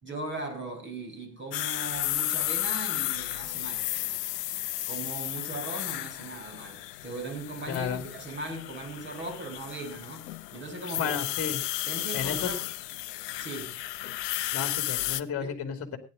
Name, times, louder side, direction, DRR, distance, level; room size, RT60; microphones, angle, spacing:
voice 1, 0.0-3.9 4.9-11.1 11.9-12.6 13.4-13.8 15.4-15.6, right 2 dB, 25° right, 5.6 m, -38 dB
sound 1, 1.5-15.2, left 15 dB, 75° left, 0.8 m, -33 dB
voice 2, 7.7-8.0 11.0-11.6 12.1-12.5 14.5-16.0, left 7 dB, 30° left, 2.7 m, -32 dB
18.0 x 10.5 x 3.9 m
hypercardioid pair, 90°, 49 cm